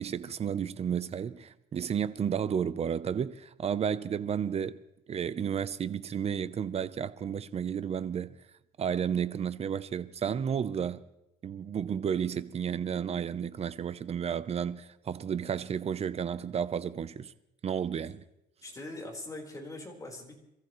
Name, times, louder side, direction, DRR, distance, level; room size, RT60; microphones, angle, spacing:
voice 1, 0.0-4.8 5.1-8.4 8.8-11.0 11.4-17.3 17.6-18.2, right 8 dB, 40° right, 0.8 m, -32 dB
voice 2, 18.6-20.3, left 2 dB, 20° left, 4.4 m, -42 dB
27.0 x 14.5 x 3.2 m
cardioid pair, 110°, 17 cm